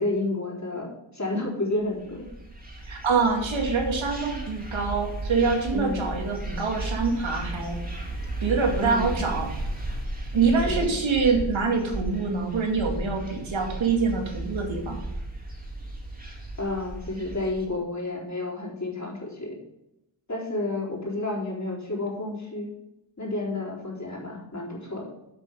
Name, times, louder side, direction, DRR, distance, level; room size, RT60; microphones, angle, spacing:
voice 1, 0.0-2.3 5.7-6.2 8.8-9.3 10.6-11.0 16.6-19.5 20.3-22.7 23.2-25.1, left 2 dB, 35° left, -6 dB, 3.9 m, -31 dB
sound 1, 1.9-17.6, right 2 dB, 20° right, 2.2 m, -34 dB
voice 2, 2.9-7.8 8.4-9.5 10.3-15.0, right 4 dB, 80° right, 1 dB, 2.3 m, -25 dB
8.1 x 6.5 x 5.2 m, 0.88 s
wide cardioid pair, 125°, 46 cm